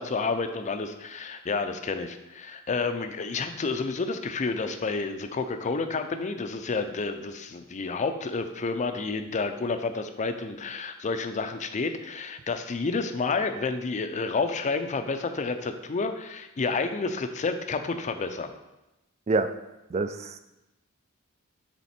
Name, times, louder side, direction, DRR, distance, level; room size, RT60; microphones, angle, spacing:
voice 1, 0.0-18.5, left 4 dB, 35° left, 8 dB, 0.5 m, -30 dB
voice 2, 19.9-20.4, right 3 dB, 30° right, 10 dB, 0.3 m, -26 dB
7.2 x 3.6 x 4.3 m, 0.95 s
head